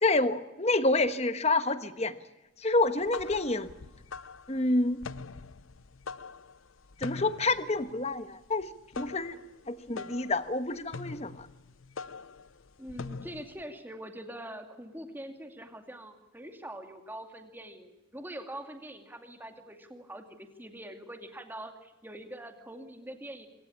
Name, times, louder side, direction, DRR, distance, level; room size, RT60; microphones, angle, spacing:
voice 1, 0.0-2.1 2.6-3.7 4.5-5.0 7.0-8.7 9.0-9.4 9.7-11.5, left 2 dB, 30° left, 11 dB, 1.2 m, -28 dB
sound 1, 2.8-13.6, left 4 dB, 75° left, 0.7 m, -44 dB
voice 2, 12.8-23.5, right 1 dB, 10° right, 6 dB, 2.4 m, -44 dB
25.5 x 18.0 x 8.6 m, 1.0 s
head